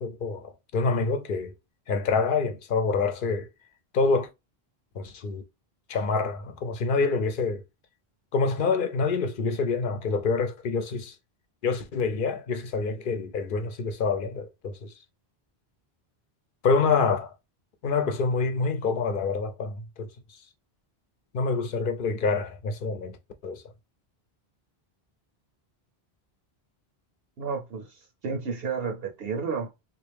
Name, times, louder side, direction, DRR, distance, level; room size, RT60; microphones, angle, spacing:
voice 1, 0.0-1.5 1.9-3.5 3.9-4.3 4.9-5.4 5.9-7.6 8.3-11.2 11.6-14.9 16.6-17.3 17.8-20.1 21.3-23.2 23.4-23.6, left 4 dB, 60° left, 0.7 m, -26 dB
voice 2, 27.4-29.7, right 5 dB, 70° right, 0.9 m, -32 dB
3.5 x 2.5 x 3.3 m
omnidirectional pair, 1.0 m